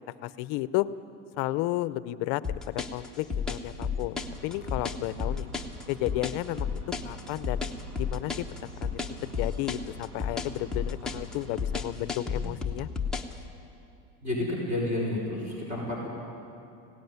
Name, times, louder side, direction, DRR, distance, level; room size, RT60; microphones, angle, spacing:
voice 1, 0.2-0.9 1.4-2.4 2.7-4.2 4.4-5.5 5.9-6.8 7.0-7.6 8.0-8.3 8.6-9.0 9.4-12.9, left 17 dB, 50° left, 16 dB, 0.6 m, -32 dB
sound 1, 2.4-13.4, left 5 dB, ahead, 0.8 m, -32 dB
sound 2, 4.2-11.9, equal, 45° right, 1.7 m, -46 dB
voice 2, 14.2-16.1, left 1 dB, 20° right, -4 dB, 4.9 m, -30 dB
17.5 x 16.0 x 9.4 m, 2.9 s
cardioid pair, 160°, 35 cm